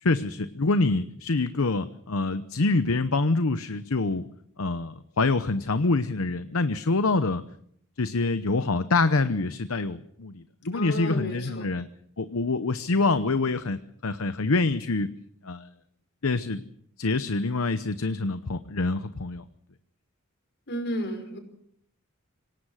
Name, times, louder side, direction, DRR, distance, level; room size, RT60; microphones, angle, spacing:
voice 1, 0.0-4.2 4.6-7.4 8.0-11.9 12.2-15.1 15.4-15.7 16.2-16.6 17.0-19.4, left 3 dB, 70° left, 12 dB, 0.9 m, -26 dB
voice 2, 10.7-11.7 20.7-21.4, equal, 55° left, 6 dB, 5.4 m, -32 dB
26.0 x 18.0 x 6.5 m, 0.68 s
head